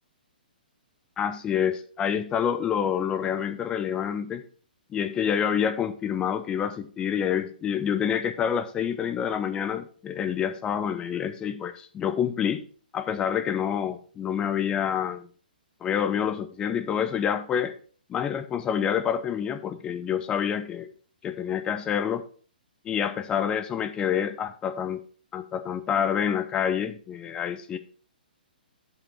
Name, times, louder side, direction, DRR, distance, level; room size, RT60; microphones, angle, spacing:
voice 1, 1.2-4.4 4.9-12.6 12.9-15.3 15.8-17.7 18.1-20.9 21.2-22.2 22.9-25.0 25.3-27.8, left 8 dB, 15° left, 10 dB, 0.5 m, -27 dB
8.3 x 6.9 x 4.3 m, 0.43 s
figure-of-eight pair, 120°, 5 cm